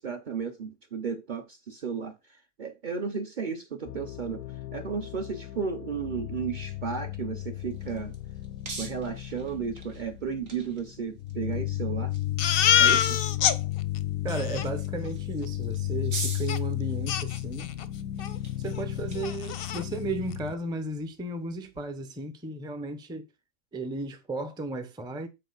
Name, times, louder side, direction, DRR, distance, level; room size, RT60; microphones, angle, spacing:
voice 1, 0.0-2.1 2.6-4.4 4.7-8.1 8.8-12.1 12.8-13.2, right 6 dB, 45° right, 0.8 m, -34 dB
sound 1, 3.9-20.5, left 14 dB, 90° left, 1.0 m, -34 dB
sound 2, 7.3-21.8, right 4 dB, 75° right, 1.9 m, -46 dB
Crying sobbing, 12.4-13.6 14.0-14.1 14.3-14.7 16.5-16.6 17.1-17.9 18.2-18.4 18.7-18.8 19.2-19.8, left 9 dB, 60° left, 0.6 m, -25 dB
voice 2, 14.2-17.7 18.6-23.3 23.7-25.3, right 2 dB, 5° right, 0.5 m, -35 dB
7.7 x 4.4 x 3.9 m
omnidirectional pair, 1.4 m